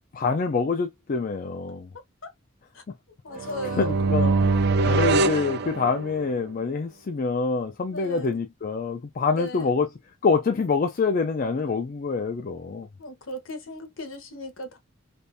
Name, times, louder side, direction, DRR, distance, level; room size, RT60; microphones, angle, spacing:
voice 1, 0.1-1.9 3.3-3.5 3.8-9.9 10.2-12.9, left 4 dB, 40° left, 0.4 m, -26 dB
voice 2, 3.2-4.0 7.9-8.4 9.2-9.8 13.0-14.8, left 1 dB, 70° left, 1.1 m, -37 dB
sound 1, 3.4-6.4, right 3 dB, 50° right, 0.4 m, -23 dB
3.5 x 2.4 x 2.6 m
head